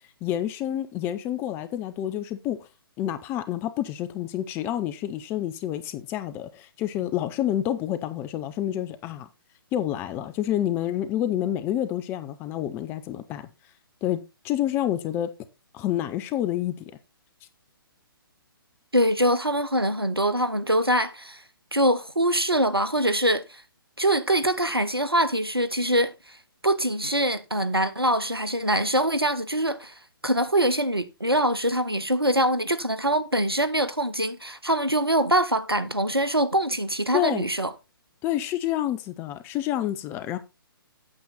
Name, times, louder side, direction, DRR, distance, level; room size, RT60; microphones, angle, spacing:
voice 1, 0.2-2.7 3.0-9.3 9.7-13.5 14.0-14.2 14.4-15.3 15.7-16.9 37.1-37.5 38.2-40.4, left 12 dB, 20° left, 0.6 m, -28 dB
voice 2, 18.9-21.4 21.7-23.6 24.0-26.1 26.6-29.9 30.2-37.7, right 1 dB, 90° right, 1.2 m, -24 dB
8.9 x 7.1 x 4.1 m
figure-of-eight pair, 130°, 12 cm